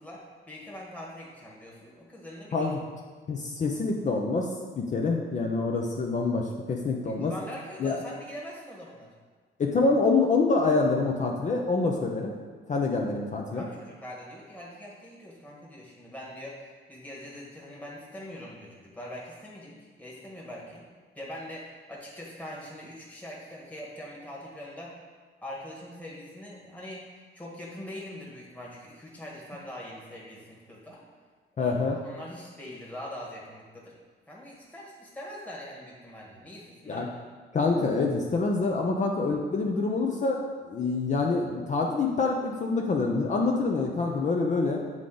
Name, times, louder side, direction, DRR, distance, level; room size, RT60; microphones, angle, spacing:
voice 1, 0.0-2.7 7.0-9.1 13.5-20.8 21.1-25.0 25.4-27.0 27.3-31.0 31.5-31.7 32.0-33.9 34.3-37.1, left 1 dB, 5° left, -5 dB, 1.4 m, -43 dB
voice 2, 3.3-4.5 4.8-7.3 7.8-8.0 9.6-12.3 12.7-13.7 31.6-32.0 36.9-37.1 37.5-44.8, left 3 dB, 40° left, 0 dB, 0.6 m, -26 dB
7.4 x 3.7 x 3.8 m, 1.5 s
cardioid pair, 90°, 20 cm